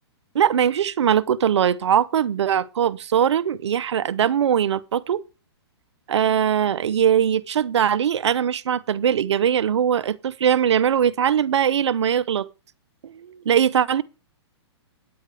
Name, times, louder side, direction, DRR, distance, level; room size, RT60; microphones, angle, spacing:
voice 1, 0.3-5.2 6.1-12.5 13.0-14.0, right 9 dB, 80° right, 0.8 m, -21 dB
9.5 x 8.5 x 4.8 m
hypercardioid pair, 145°, 14 cm